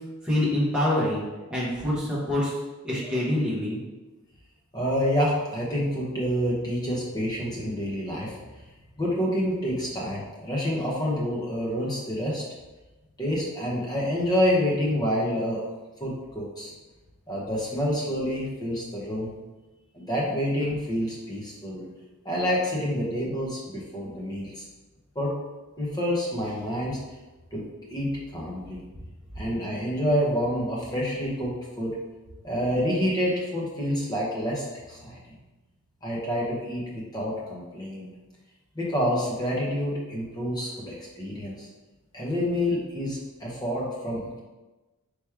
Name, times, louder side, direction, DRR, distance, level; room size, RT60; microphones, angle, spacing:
voice 1, 0.2-1.2 1.5-2.5 2.8-3.8, left 1 dB, 5° right, -8 dB, 1.1 m, -25 dB
voice 2, 4.7-8.4 9.0-12.4 13.2-15.7 16.0-16.7 17.3-19.3 19.9-21.8 22.2-24.6 25.1-25.4 25.8-27.0 27.5-28.8 29.3-31.5 31.8-31.9 32.4-35.4 36.0-38.1 38.7-41.7 42.1-44.4, equal, 15° left, -5 dB, 0.9 m, -28 dB
3.5 x 3.0 x 4.5 m, 1.2 s
head